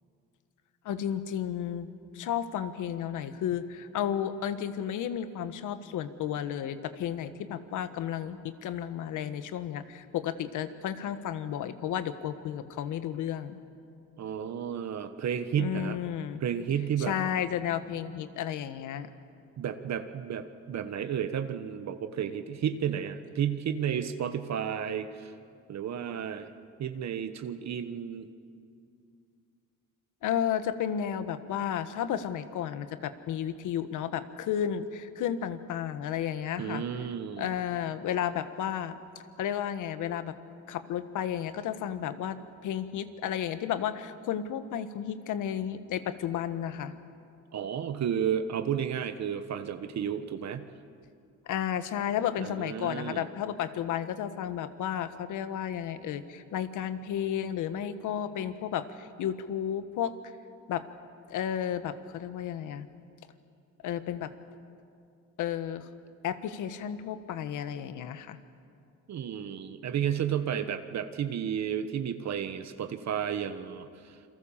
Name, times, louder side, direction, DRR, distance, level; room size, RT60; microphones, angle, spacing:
voice 1, 0.8-1.9 2.1-13.6 15.6-16.4 17.0-19.1 30.2-36.8 37.4-39.0 39.4-40.3 40.7-42.4 42.6-46.9 51.4-60.1 60.7-60.8 61.3-62.9 63.8-64.3 65.4-65.9 66.2-68.4, left 9 dB, 85° left, 11 dB, 1.5 m, -32 dB
voice 2, 14.2-16.0 16.4-17.1 19.6-25.3 25.7-26.5 26.8-28.3 36.6-37.5 47.5-50.7 52.4-53.3 69.1-74.2, right 8 dB, 65° right, 9 dB, 1.4 m, -32 dB
28.5 x 23.5 x 7.4 m, 2.4 s
cardioid pair, 90°, 30 cm